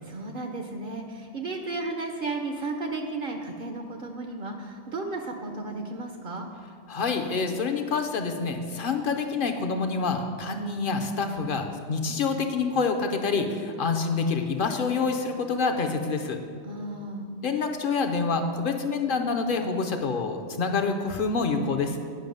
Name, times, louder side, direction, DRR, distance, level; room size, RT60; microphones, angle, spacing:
voice 1, 0.0-6.5 13.7-13.9 16.6-17.3, right 2 dB, 55° right, 3 dB, 0.7 m, -34 dB
voice 2, 6.9-16.4 17.4-22.0, left 4 dB, 55° left, 5 dB, 0.7 m, -27 dB
9.1 x 5.6 x 5.3 m, 2.2 s
omnidirectional pair, 1.2 m